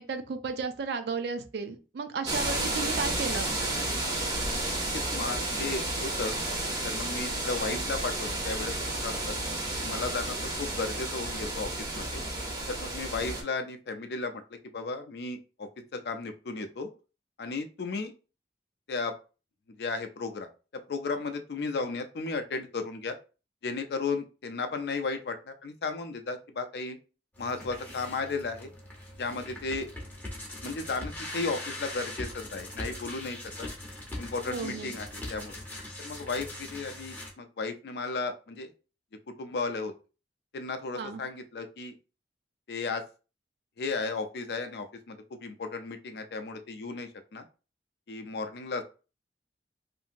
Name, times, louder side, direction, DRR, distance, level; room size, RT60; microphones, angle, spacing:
voice 1, 0.0-3.5 34.5-34.9 40.9-41.2, right 4 dB, 65° right, 8 dB, 0.4 m, -34 dB
sound 1, 2.3-13.4, right 2 dB, 25° right, 0.7 m, -32 dB
voice 2, 4.9-6.3 6.8-9.4 9.8-12.2 12.7-14.4 14.7-16.9 17.4-18.1 18.9-19.1 19.8-20.5 20.9-23.2 23.6-27.0 27.4-28.7 29.2-29.9 30.6-33.7 34.2-35.6 36.0-38.7 39.3-39.9 40.5-41.9 42.7-43.0 43.8-47.4 48.1-48.8, left 3 dB, 65° left, 7 dB, 0.4 m, -34 dB
sound 2, 27.3-37.3, left 1 dB, 10° left, 0.7 m, -41 dB
2.8 x 2.6 x 2.5 m, 0.33 s
head